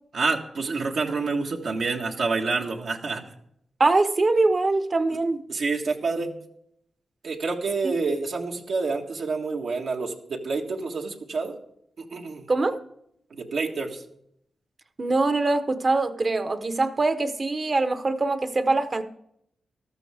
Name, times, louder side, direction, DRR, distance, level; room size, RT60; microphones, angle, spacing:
voice 1, 0.1-3.2 5.5-6.3 7.2-11.6 12.0-12.5 13.3-14.0, right 4 dB, 75° right, 1.6 m, -28 dB
voice 2, 3.8-5.4 12.5-12.8 15.0-19.0, right 3 dB, 40° right, 1.0 m, -23 dB
14.0 x 13.0 x 3.6 m
cardioid pair, 75°, 0 cm